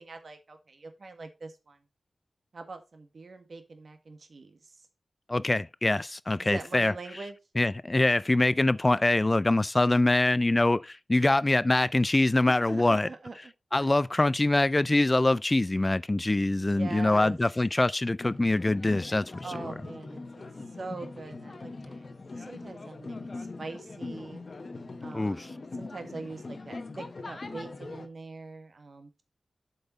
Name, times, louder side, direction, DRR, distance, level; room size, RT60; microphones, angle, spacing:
voice 1, 0.0-1.8 2.5-4.7 6.4-7.4 12.4-13.5 13.8-13.9 16.6-17.4 19.4-20.4 20.7-22.1 22.4-24.4 25.0-29.2, right 3 dB, 60° right, 1.5 m, -43 dB
voice 2, 5.3-6.9 7.6-13.1 13.7-19.3 25.1-25.5, left 2 dB, 25° left, 0.3 m, -24 dB
sound 1, 18.2-28.1, left 3 dB, 50° left, 1.0 m, -41 dB
7.9 x 5.4 x 4.0 m
wide cardioid pair, 70°, 0 cm